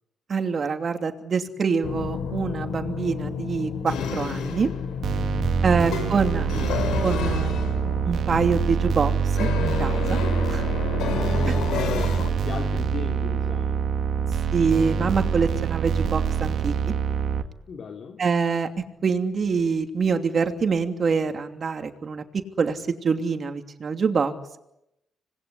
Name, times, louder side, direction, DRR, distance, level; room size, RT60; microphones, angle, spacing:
voice 1, 0.3-4.7 5.6-6.5 7.0-7.7 8.0-9.1 9.4-10.2 10.5-10.6 11.5-11.6 14.5-16.7 18.2-18.7 19.0-22.2 22.6-24.6, right 5 dB, 45° right, 6 dB, 2.9 m, -25 dB
sound 1, 1.8-12.3, left 6 dB, 85° left, 4.5 m, -30 dB
sound 2, 5.0-17.4, right 6 dB, 65° right, 2.2 m, -25 dB
voice 2, 5.5-6.2 11.0-13.9 17.7-18.2, left 6 dB, 55° left, 2 dB, 2.9 m, -37 dB
26.0 x 20.0 x 10.0 m, 0.86 s
cardioid pair, 90°, 0 cm